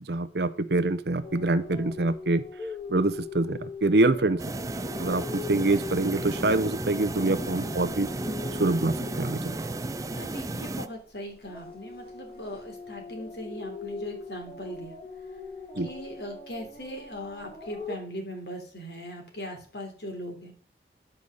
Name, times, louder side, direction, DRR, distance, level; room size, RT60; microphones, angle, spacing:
voice 1, 0.0-2.4 2.9-4.4 5.0-8.1 8.6-9.6 15.8-15.9, right 2 dB, 65° right, 13 dB, 0.7 m, -25 dB
sound 1, 1.2-11.0 11.3-18.0, left 4 dB, 30° left, 3.2 m, -41 dB
sound 2, 4.4-10.9, right 2 dB, 20° right, 0.4 m, -34 dB
voice 2, 10.1-14.9 15.8-20.5, equal, 65° left, 2 dB, 3.3 m, -39 dB
10.0 x 5.4 x 6.5 m, 0.43 s
head